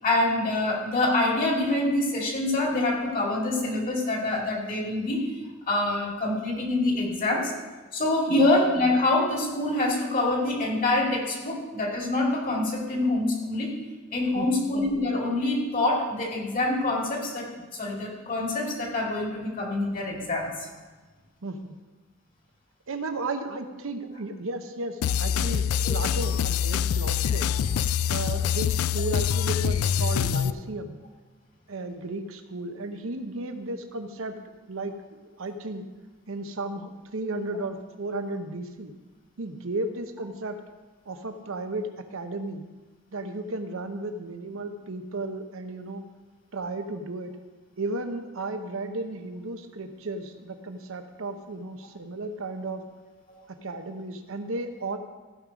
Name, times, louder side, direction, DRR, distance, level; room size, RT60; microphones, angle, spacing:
voice 1, 0.0-5.3 5.7-7.5 7.9-13.7 14.1-20.7 25.5-25.6 25.8-26.3 27.6-27.7 53.3-53.4, left 2 dB, 40° left, 0 dB, 2.2 m, -26 dB
voice 2, 14.3-14.7 21.4-21.8 22.9-27.5 28.1-31.0 31.7-34.3 34.7-34.9 35.4-35.8 36.3-38.9 39.4-40.6 41.1-42.6 43.1-46.0 46.5-47.3 47.8-52.8 53.5-55.0, right 2 dB, 70° right, 7 dB, 0.9 m, -34 dB
sound 1, 25.0-30.5, left 8 dB, 80° left, 0.3 m, -25 dB
15.0 x 5.4 x 5.1 m, 1.2 s
head